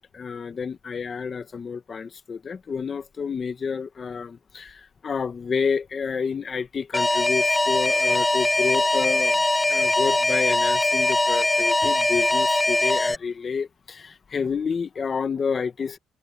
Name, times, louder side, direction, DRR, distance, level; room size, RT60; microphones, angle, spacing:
voice 1, 0.0-9.4 9.7-16.0, left 5 dB, 35° left, 2.0 m, -29 dB
Alarm, 6.9-13.2, left 2 dB, 10° left, 0.8 m, -21 dB
cardioid pair, 120°, 0 cm